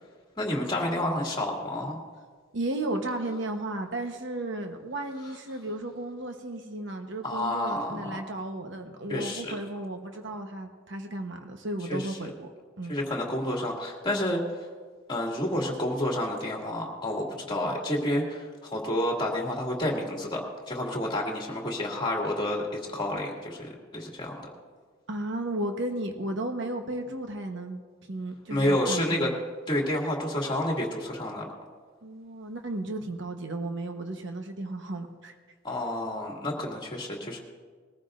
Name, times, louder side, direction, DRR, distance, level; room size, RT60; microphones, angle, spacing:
voice 1, 0.4-2.0 7.2-8.2 9.1-9.5 11.9-12.3 12.9-14.4 15.1-24.5 28.5-29.3 29.7-31.4 35.6-37.4, left 1 dB, 25° left, -1 dB, 2.3 m, -29 dB
voice 2, 2.5-12.5 12.8-12.9 25.1-27.8 28.1-29.4 32.0-35.3, right 1 dB, 65° right, 4 dB, 1.1 m, -34 dB
21.5 x 14.5 x 2.5 m, 1.5 s
head